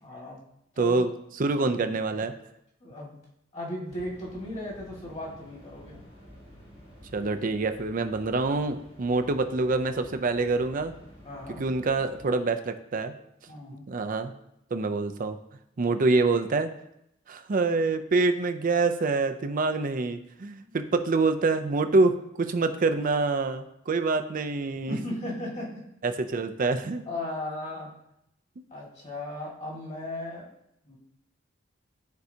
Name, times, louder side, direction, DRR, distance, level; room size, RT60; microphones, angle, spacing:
voice 1, 0.0-0.4 0.7-1.1 2.8-3.2 3.5-6.0 11.2-11.7 13.5-13.8 20.6-20.8 24.9-25.8 27.1-27.9 28.7-30.5 30.8-31.0, left 1 dB, 35° left, -3 dB, 1.9 m, -36 dB
voice 2, 0.8-2.3 7.1-10.9 11.6-13.1 13.9-14.3 14.7-15.4 15.8-16.7 17.3-25.0 26.0-27.1, right 3 dB, 45° right, 8 dB, 0.5 m, -26 dB
sound 1, 3.9-12.3, equal, 50° left, 2.3 m, -50 dB
10.5 x 4.6 x 2.8 m, 0.80 s
head